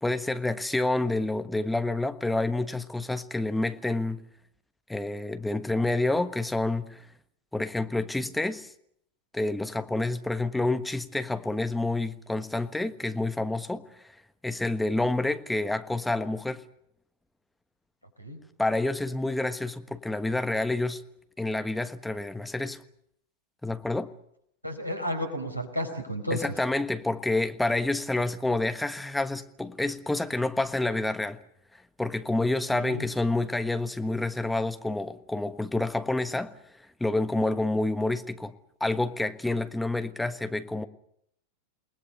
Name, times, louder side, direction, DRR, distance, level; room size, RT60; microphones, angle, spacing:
voice 1, 0.0-4.2 4.9-7.1 7.5-8.7 9.3-14.0 14.4-16.6 18.6-21.0 21.4-22.8 23.6-24.1 26.3-31.4 32.0-36.6 37.0-38.5 38.8-40.8, left 2 dB, 5° left, 1.4 m, -28 dB
voice 2, 24.6-26.5 32.7-33.0, equal, 90° left, 4.7 m, -32 dB
28.5 x 20.0 x 6.8 m
figure-of-eight pair, 90°, 0 cm